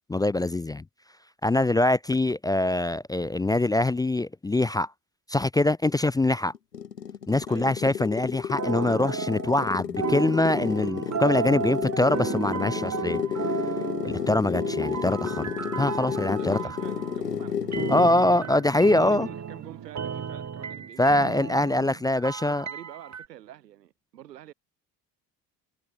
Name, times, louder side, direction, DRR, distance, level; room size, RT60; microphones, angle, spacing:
voice 1, 0.1-0.8 1.4-4.9 5.3-6.5 7.3-13.2 14.0-15.4 15.8-16.6 17.9-19.3 21.0-22.6, left 2 dB, 10° left, 0.4 m, -24 dB
sound 1, 6.5-18.2, left 8 dB, 90° left, 2.5 m, -31 dB
sound 2, 8.6-9.7 10.0-17.2 17.7-23.3, right 6 dB, 35° right, 3.5 m, -34 dB
sound 3, 10.5-20.3, right 13 dB, 55° right, 6.6 m, -46 dB
voice 2, 16.4-18.5 19.0-21.2 22.4-24.5, right 12 dB, 85° right, 6.2 m, -47 dB
figure-of-eight pair, 50°, 48 cm